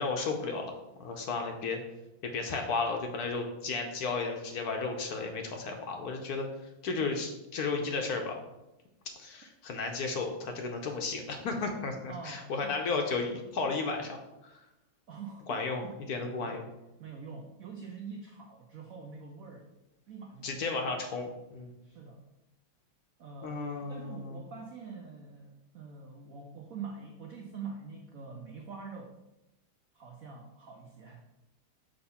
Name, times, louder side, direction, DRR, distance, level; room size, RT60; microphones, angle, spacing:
voice 1, 0.0-1.8 2.2-6.5 6.8-8.4 9.2-14.6 15.5-16.7 20.4-21.7 23.4-24.4, left 4 dB, 65° left, 3 dB, 1.0 m, -34 dB
voice 2, 12.1-12.8 13.6-13.7 15.1-15.9 16.2-16.6 17.0-19.7 20.1-20.8 21.8-22.2 23.2-23.6 23.9-29.2 29.9-31.2, right 5 dB, 85° right, 2 dB, 0.7 m, -45 dB
6.4 x 2.9 x 5.5 m, 0.97 s
omnidirectional pair, 2.3 m